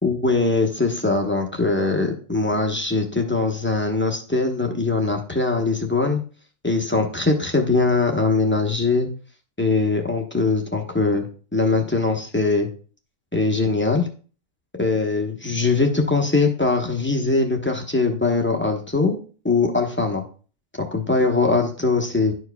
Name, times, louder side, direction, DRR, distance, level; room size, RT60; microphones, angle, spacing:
voice 1, 0.0-6.2 6.6-9.1 9.6-11.3 11.5-12.7 13.3-14.1 14.8-19.2 19.4-20.2 20.9-22.3, left 3 dB, 10° left, 1 dB, 0.8 m, -21 dB
11.5 x 4.6 x 2.3 m, 0.39 s
omnidirectional pair, 1.6 m